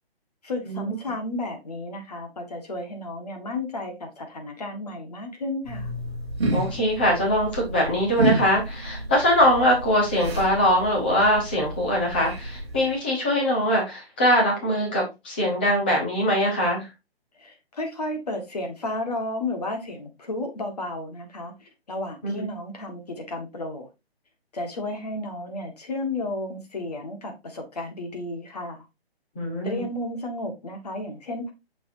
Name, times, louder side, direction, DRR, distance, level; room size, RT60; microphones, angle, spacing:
voice 1, 0.4-5.9 17.4-23.9 24.5-28.8 29.6-31.5, left 2 dB, 40° left, 1.7 m, -33 dB
sound 1, 5.6-12.9, right 2 dB, 25° right, 1.8 m, -30 dB
voice 2, 6.5-16.9 22.2-22.4 29.3-29.8, equal, 10° left, 1.0 m, -22 dB
6.6 x 6.3 x 2.7 m
hypercardioid pair, 180°, 31 cm